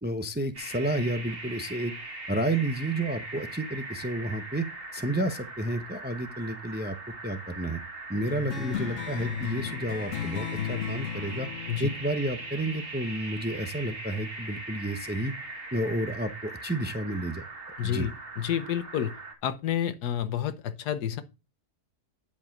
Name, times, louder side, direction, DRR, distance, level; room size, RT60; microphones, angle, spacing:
voice 1, 0.0-1.9 2.3-4.7 4.9-7.0 7.2-7.8 8.1-11.5 11.8-15.3 15.7-17.4 17.8-18.1, right 1 dB, 10° right, 0.5 m, -31 dB
sound 1, 0.5-19.3, right 2 dB, 35° right, 2.1 m, -40 dB
sound 2, 8.3-13.2, left 9 dB, 55° left, 1.1 m, -36 dB
voice 2, 17.8-18.1 18.4-19.1 19.4-21.2, left 10 dB, 90° left, 1.5 m, -29 dB
10.5 x 5.0 x 5.9 m
omnidirectional pair, 1.7 m